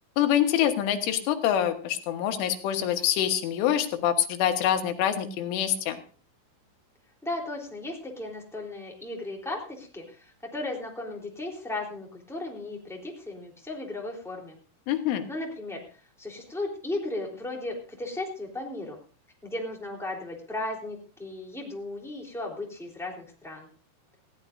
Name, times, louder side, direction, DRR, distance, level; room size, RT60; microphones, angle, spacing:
voice 1, 0.2-6.0 14.9-15.3, left 10 dB, 85° left, 6 dB, 3.8 m, -25 dB
voice 2, 7.2-14.6 15.3-15.8 16.2-19.0 19.4-23.7, left 2 dB, ahead, -1 dB, 2.6 m, -36 dB
20.0 x 15.5 x 2.6 m, 0.38 s
omnidirectional pair, 5.4 m